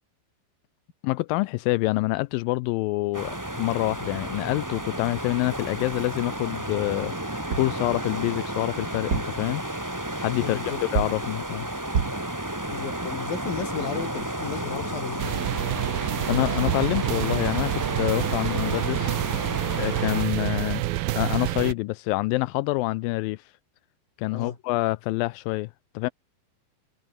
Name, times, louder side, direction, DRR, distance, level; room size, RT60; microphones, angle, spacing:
voice 1, 1.0-9.6 10.2-10.6 10.9-11.7 16.3-19.2 19.8-20.8 21.2-23.4 24.2-26.1, left 21 dB, 85° left, 2.0 m, -27 dB
sound 1, 3.1-20.3, right 1 dB, 5° right, 1.8 m, -32 dB
sound 2, 7.5-7.8 8.9-9.5 10.9-11.3 11.9-12.3 16.4-16.5 16.7-17.0, right 6 dB, 55° right, 1.0 m, -28 dB
voice 2, 10.4-10.8 12.7-15.4 24.3-24.6, left 7 dB, 65° left, 5.1 m, -34 dB
sound 3, 15.2-21.7, right 16 dB, 75° right, 2.6 m, -28 dB
omnidirectional pair, 4.5 m